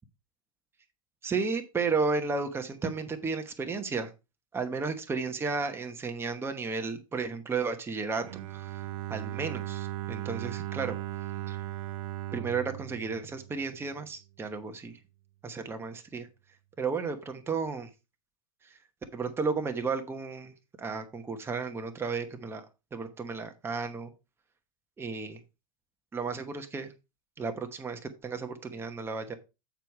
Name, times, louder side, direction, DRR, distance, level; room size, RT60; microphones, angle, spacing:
voice 1, 1.2-4.1 4.5-8.2 8.5-8.8 9.1-11.0 11.5-11.6 12.3-15.0 15.4-16.3 16.8-17.9 18.6-18.8 19.1-22.6 22.9-24.1 25.0-25.4 26.1-26.9 27.4-29.4, right 4 dB, 15° right, 7 dB, 1.0 m, -33 dB
Bowed string instrument, 8.2-14.1, right 14 dB, 65° right, 0.8 m, -37 dB
9.0 x 4.7 x 4.7 m, 0.27 s
supercardioid pair, 130°, 19 cm